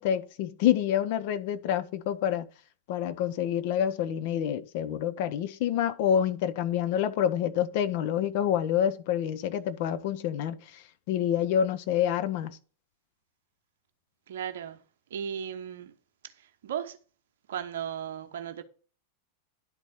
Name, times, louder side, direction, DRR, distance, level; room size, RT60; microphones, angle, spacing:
voice 1, 0.0-2.5 2.9-10.8 11.1-12.6, left 10 dB, 50° left, 0.9 m, -27 dB
voice 2, 14.3-14.8 15.1-15.9 16.6-17.0 17.5-18.6, right 8 dB, 60° right, 1.0 m, -35 dB
11.0 x 4.1 x 7.1 m
figure-of-eight pair, 90°, 0 cm